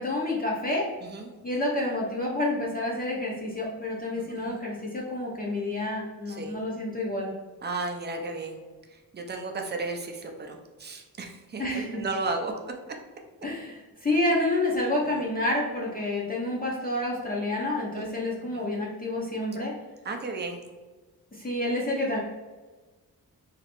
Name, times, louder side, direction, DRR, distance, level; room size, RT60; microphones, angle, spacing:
voice 1, 0.0-0.9 1.4-7.3 11.6-11.9 13.4-19.7 21.3-22.2, left 1 dB, 25° left, -4 dB, 0.6 m, -29 dB
voice 2, 1.0-1.3 4.2-4.6 6.3-6.6 7.6-8.6 8.9-12.5 15.0-15.2 17.9-18.2 18.5-18.7 20.0-20.7, right 3 dB, 30° right, 3 dB, 0.4 m, -34 dB
3.3 x 2.9 x 2.9 m, 1.3 s
wide cardioid pair, 165°, 37 cm